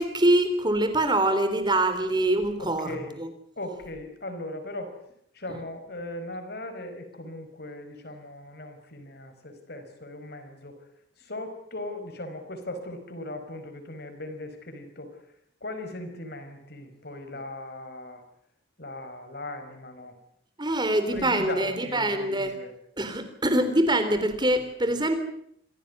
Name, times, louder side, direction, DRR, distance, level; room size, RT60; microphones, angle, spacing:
voice 1, 0.0-3.3 20.6-22.5 23.0-25.2, right 1 dB, 25° right, 10 dB, 3.5 m, -24 dB
voice 2, 2.6-3.1 3.6-4.9 5.3-10.8 11.2-15.2 15.6-18.2 18.8-20.2 21.1-22.7, left 1 dB, 55° left, 8 dB, 5.1 m, -38 dB
26.5 x 17.0 x 9.6 m, 0.70 s
head